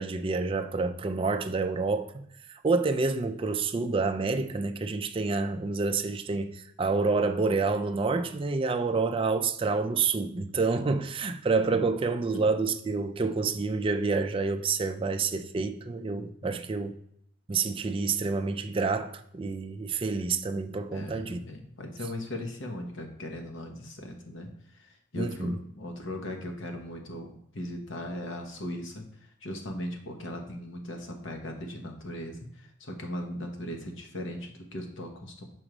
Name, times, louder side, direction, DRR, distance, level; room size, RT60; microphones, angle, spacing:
voice 1, 0.0-16.9 17.5-21.4 25.2-25.6, right 4 dB, 25° right, 0.4 m, -28 dB
voice 2, 16.4-16.7 20.9-29.1 29.4-35.4, left 1 dB, 70° left, 1.1 m, -38 dB
6.1 x 3.0 x 5.0 m
head